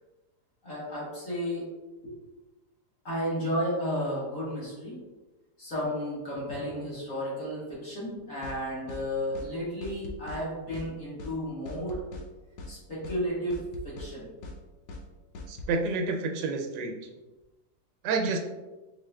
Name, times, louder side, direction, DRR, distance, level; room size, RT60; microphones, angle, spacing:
voice 1, 0.6-1.6 3.0-5.0 5.6-12.0 12.7-13.5 13.8-14.3, equal, 50° left, -8 dB, 2.0 m, -33 dB
sound 1, 8.4-8.6 8.9-9.0 9.3-9.5 9.8-10.4 10.7-10.9 11.2-11.3 11.6-12.3 12.6-12.7 13.0-13.2 13.5-14.1 14.4-14.6 14.9-15.0 15.3-15.7, left 2 dB, 75° left, 1.2 m, -41 dB
voice 2, 15.5-16.9 18.0-18.4, right 3 dB, 85° right, 3 dB, 1.3 m, -29 dB
4.8 x 4.1 x 2.3 m, 1.1 s
omnidirectional pair, 1.9 m